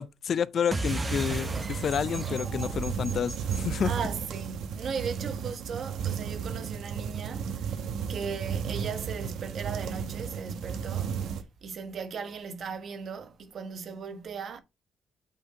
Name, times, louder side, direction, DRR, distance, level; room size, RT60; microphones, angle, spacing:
voice 1, 0.0-3.9, left 8 dB, 55° left, 0.4 m, -29 dB
sound 1, 0.7-5.6, right 2 dB, 25° right, 0.9 m, -36 dB
sound 2, 0.8-11.4, right 7 dB, 80° right, 0.9 m, -34 dB
voice 2, 3.8-7.5 8.1-11.2 11.6-14.6, right 6 dB, 55° right, 1.1 m, -37 dB
8.4 x 4.3 x 2.8 m
cardioid pair, 90°, 0 cm